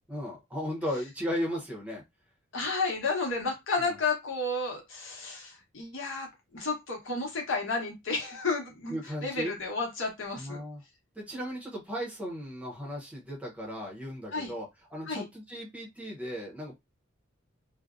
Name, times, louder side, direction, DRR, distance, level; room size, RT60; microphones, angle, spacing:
voice 1, 0.1-2.0 3.8-3.9 8.9-9.5 10.3-10.8 11.1-16.8, equal, 5° right, 0.7 m, -36 dB
voice 2, 2.5-6.3 6.5-10.6 14.3-14.5 15.1-15.2, left 3 dB, 70° left, 0.9 m, -32 dB
2.5 x 2.0 x 2.4 m
head